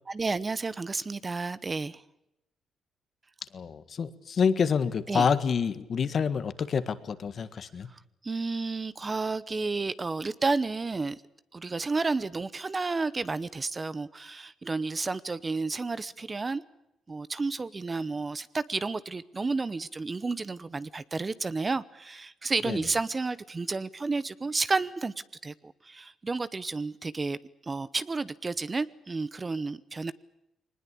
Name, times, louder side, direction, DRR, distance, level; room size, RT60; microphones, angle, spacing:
voice 1, 0.1-2.0 5.1-5.3 7.9-11.2 11.5-16.6 17.1-25.1 25.4-27.4 27.7-30.1, right 3 dB, 25° right, 17 dB, 0.8 m, -31 dB
voice 2, 3.5-7.9 22.7-22.8, left 6 dB, 50° left, 13 dB, 1.6 m, -27 dB
22.0 x 20.0 x 8.4 m, 0.87 s
cardioid pair, 90°, 0 cm